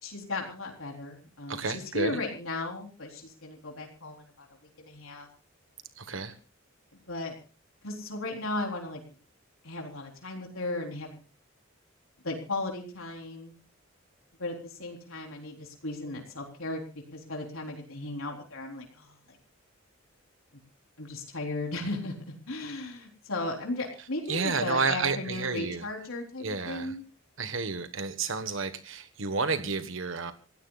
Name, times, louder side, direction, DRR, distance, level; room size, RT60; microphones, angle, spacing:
voice 1, 0.0-4.5 4.8-5.3 7.1-7.3 7.8-9.0 9.6-11.2 12.2-13.5 14.4-16.8 17.1-19.4 21.0-27.0, left 2 dB, 80° left, 1 dB, 3.9 m, -36 dB
voice 2, 1.5-2.2 6.0-6.3 24.3-25.9 26.4-26.9 27.4-30.3, right 4 dB, 70° right, 10 dB, 1.3 m, -31 dB
28.0 x 16.5 x 2.4 m, 0.33 s
head